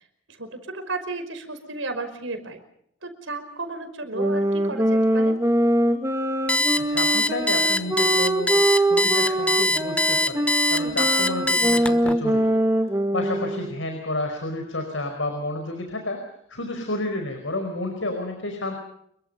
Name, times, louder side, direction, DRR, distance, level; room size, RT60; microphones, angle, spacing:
voice 1, 0.3-2.6 3.0-5.3 10.8-11.0, right 2 dB, 80° right, 8 dB, 5.3 m, -33 dB
sound 1, 4.1-13.8, right 1 dB, 15° right, 2.3 m, -23 dB
Alarm, 6.5-12.1, left 1 dB, 5° left, 1.0 m, -22 dB
voice 2, 6.8-12.5 13.1-16.2 16.5-18.8, left 2 dB, 75° left, 5 dB, 5.0 m, -30 dB
28.0 x 23.5 x 5.6 m, 0.70 s
head